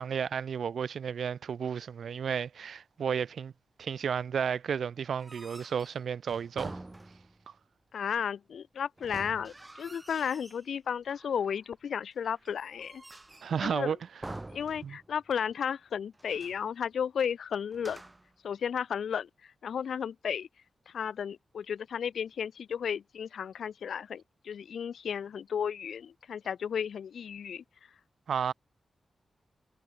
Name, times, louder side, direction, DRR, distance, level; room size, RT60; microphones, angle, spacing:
voice 1, 0.0-3.5 3.8-6.8 13.4-14.0 14.8-15.0 28.3-28.5, right 7 dB, 75° right, 2.4 m, -32 dB
sound 1, 5.1-7.5 9.0-10.7 11.1-11.7 12.2-13.6 14.2-15.3 15.6-15.7 16.1-16.7 17.7-18.4, right 2 dB, 15° right, 4.4 m, -47 dB
voice 2, 7.9-13.0 13.6-13.9 14.5-18.0 18.4-19.3 19.6-20.5 20.9-27.6, left 7 dB, 80° left, 1.6 m, -33 dB
wide cardioid pair, 150°, 0 cm